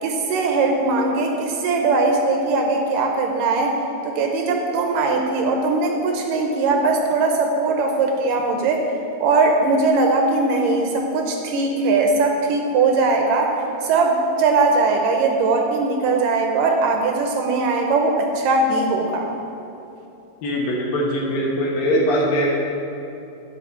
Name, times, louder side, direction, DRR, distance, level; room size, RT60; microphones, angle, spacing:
voice 1, 0.0-3.7 4.0-8.9 9.2-13.6 13.8-19.3, right 3 dB, 75° right, 2 dB, 2.1 m, -20 dB
voice 2, 20.4-22.5, equal, 70° left, -3 dB, 2.8 m, -21 dB
11.0 x 5.5 x 7.2 m, 2.8 s
omnidirectional pair, 4.4 m